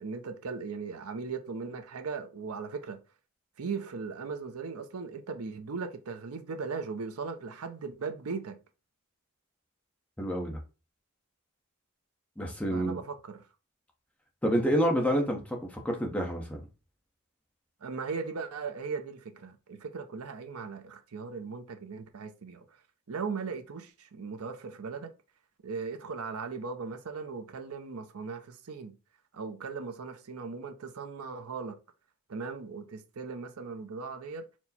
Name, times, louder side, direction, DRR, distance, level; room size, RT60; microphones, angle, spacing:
voice 1, 0.0-3.0 3.6-8.6 12.7-13.4 17.8-22.6 23.1-25.1 25.6-28.9 29.3-31.8 32.3-34.4, right 5 dB, 85° right, 0.6 m, -38 dB
voice 2, 10.2-10.6 12.4-13.0 14.4-16.6, equal, 5° left, 0.8 m, -28 dB
4.5 x 2.1 x 4.1 m
head